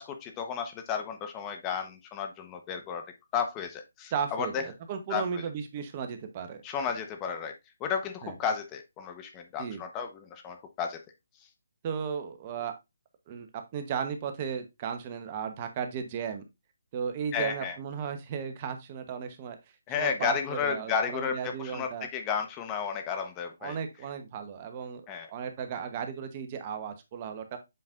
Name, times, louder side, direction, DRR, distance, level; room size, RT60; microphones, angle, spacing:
voice 1, 0.0-3.0 3.3-4.6 5.1-5.4 6.6-7.5 7.8-11.0 17.3-17.8 19.9-23.8 25.1-25.3, left 6 dB, 20° left, 6 dB, 1.0 m, -33 dB
voice 2, 4.1-6.6 8.2-8.3 9.6-9.8 11.8-12.7 13.3-16.4 16.9-19.6 20.0-22.1 23.6-25.0 25.3-27.6, right 7 dB, 30° right, 7 dB, 1.0 m, -35 dB
7.8 x 5.2 x 2.5 m, 0.22 s
figure-of-eight pair, 150°, 0 cm